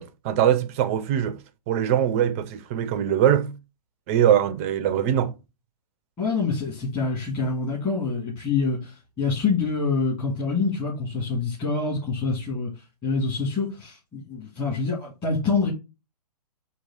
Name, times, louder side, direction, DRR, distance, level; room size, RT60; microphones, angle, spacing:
voice 1, 0.0-1.4 1.7-3.5 4.1-5.3, right 10 dB, 20° right, 0.4 m, -22 dB
voice 2, 6.2-12.7 13.0-15.7, left 4 dB, 25° left, 2.1 m, -26 dB
4.6 x 2.8 x 3.9 m
figure-of-eight pair, 120°, 21 cm